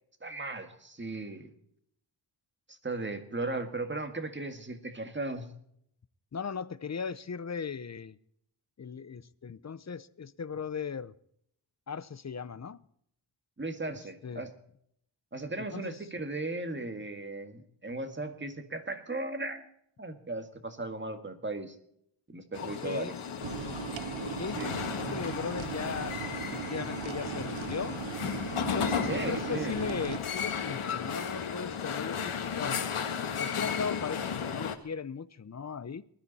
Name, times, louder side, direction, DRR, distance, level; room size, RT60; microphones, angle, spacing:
voice 1, 0.2-1.5 2.7-5.5 13.6-14.5 15.3-19.7 20.0-21.8 22.3-23.2 24.6-24.8 29.1-29.7, right 2 dB, 20° right, 7 dB, 1.9 m, -37 dB
voice 2, 6.3-8.2 8.8-11.1 11.9-12.8 13.9-14.5 15.6-16.0 22.6-23.2 24.2-28.0 28.7-32.8 33.4-36.0, left 6 dB, 35° left, 17 dB, 0.6 m, -38 dB
sound 1, 22.5-34.8, left 7 dB, 80° left, 1.6 m, -34 dB
sound 2, 23.4-30.2, right 12 dB, 65° right, 0.5 m, -39 dB
20.0 x 13.0 x 4.2 m, 0.69 s
wide cardioid pair, 115°, 49 cm